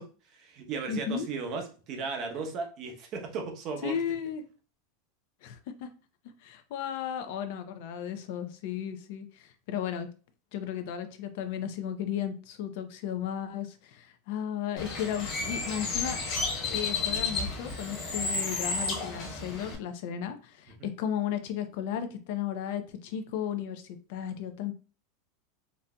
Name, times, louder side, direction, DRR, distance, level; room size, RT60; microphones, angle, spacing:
voice 1, 0.0-4.0 20.8-20.9, right 4 dB, 40° right, 4 dB, 0.8 m, -36 dB
voice 2, 0.9-1.3 3.8-4.4 5.4-5.9 6.4-10.1 10.5-16.2 16.7-24.7, left 9 dB, 60° left, 8 dB, 0.5 m, -34 dB
Bird, 14.8-19.8, left 3 dB, 35° left, 1.5 m, -32 dB
4.0 x 2.6 x 2.2 m, 0.35 s
supercardioid pair, 155°, 0 cm